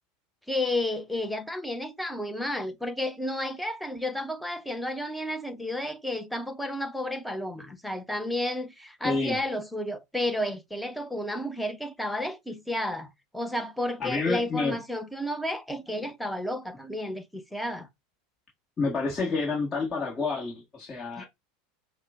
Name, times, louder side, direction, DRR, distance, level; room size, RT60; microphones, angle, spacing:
voice 1, 0.5-17.9 21.2-21.3, left 1 dB, ahead, 0.8 m, -32 dB
voice 2, 9.0-9.4 14.0-14.8 18.8-21.3, left 3 dB, 20° left, 1.5 m, -29 dB
5.4 x 2.2 x 3.6 m
figure-of-eight pair, 80°, 0 cm